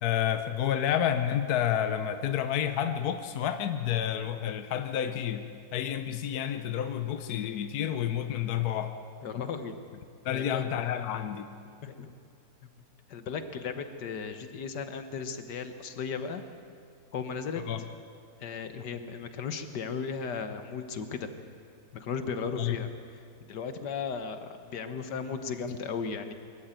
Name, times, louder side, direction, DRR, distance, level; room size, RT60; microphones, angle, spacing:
voice 1, 0.0-5.5 5.7-8.9 10.2-11.5 17.7-17.8 22.6-22.8, left 10 dB, 70° left, 8 dB, 1.3 m, -29 dB
voice 2, 9.2-9.7 10.3-10.7 11.8-12.1 13.1-16.4 17.1-17.6 18.4-21.3 21.9-22.9 23.5-26.3, left 6 dB, 85° left, 9 dB, 1.8 m, -35 dB
23.0 x 13.5 x 9.0 m, 2.5 s
omnidirectional pair, 1.8 m